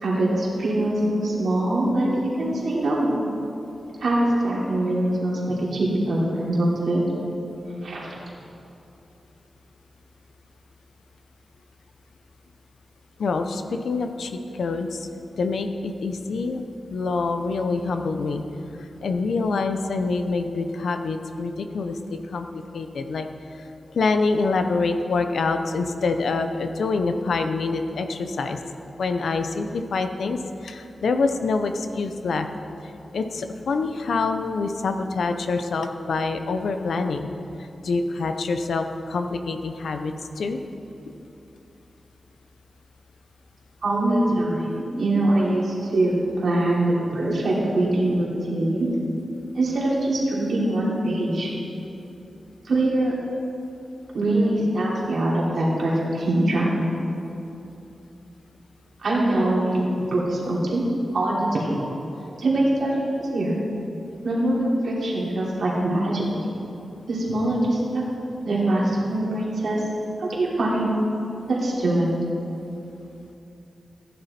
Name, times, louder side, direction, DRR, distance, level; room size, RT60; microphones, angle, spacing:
voice 1, 0.0-2.1 2.4-3.1 4.0-7.0 7.8-8.1 43.8-48.9 49.5-51.5 52.7-53.1 54.1-56.7 59.0-60.9 61.1-61.7 62.4-63.5 64.2-66.3 67.1-68.0 68.4-69.8 70.2-70.9 71.5-72.1, right 1 dB, 65° right, -5 dB, 3.1 m, -23 dB
voice 2, 13.2-15.1 15.4-16.6 16.9-18.4 18.8-23.3 23.9-28.6 29.0-32.5 33.1-37.3 37.8-40.6 45.9-46.2 47.3-47.4 55.0-55.1 60.0-60.1, left 3 dB, 80° left, 7 dB, 0.7 m, -26 dB
15.5 x 10.5 x 4.4 m, 2.8 s
wide cardioid pair, 155°, 0 cm